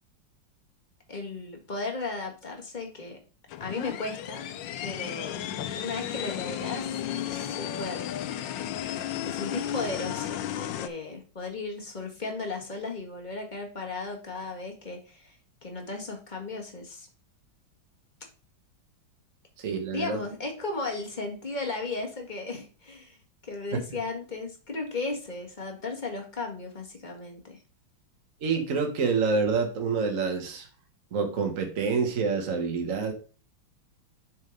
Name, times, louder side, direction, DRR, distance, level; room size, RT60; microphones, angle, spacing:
voice 1, 1.1-3.2 3.6-4.5 4.8-5.4 5.8-8.1 9.2-15.3 15.6-17.1 19.9-23.2 23.4-27.6, left 3 dB, 25° left, 1 dB, 1.6 m, -35 dB
sound 1, 3.5-10.9, left 10 dB, 75° left, 1.3 m, -34 dB
voice 2, 19.6-20.2 23.7-23.8 28.4-30.7 31.1-33.1, right 5 dB, 45° right, 4 dB, 1.6 m, -27 dB
6.6 x 4.6 x 5.2 m, 0.36 s
omnidirectional pair, 2.2 m